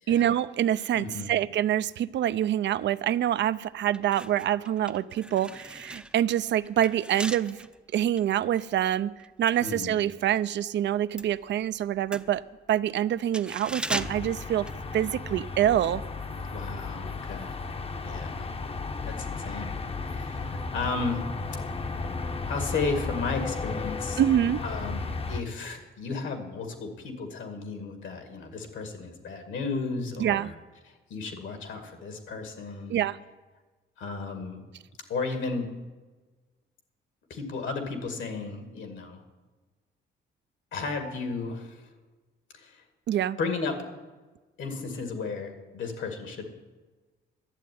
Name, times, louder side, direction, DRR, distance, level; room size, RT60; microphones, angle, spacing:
voice 1, 0.1-7.6 7.9-9.1 9.4-12.4 12.7-14.7 14.9-16.0 24.2-24.6 30.2-30.5 32.9-33.2 43.1-43.4, right 11 dB, 65° right, 15 dB, 0.5 m, -26 dB
voice 2, 0.9-1.3 9.6-9.9 16.3-17.6 18.0-18.5 19.0-19.7 20.0-21.3 22.5-24.2 24.6-30.5 31.1-33.0 34.0-34.6 35.1-35.7 37.3-39.2 40.7-41.9 42.5-42.8 43.4-43.9 44.6-46.5, left 4 dB, 75° left, 6 dB, 2.2 m, -34 dB
sound 1, 3.3-3.4 3.9-10.5 10.8-15.4 15.7-15.9, right 1 dB, 5° right, 0.6 m, -40 dB
sound 2, 14.0-25.4, left 3 dB, 30° left, 0.8 m, -34 dB
11.5 x 7.4 x 9.4 m, 1.3 s
cardioid pair, 90°, 20 cm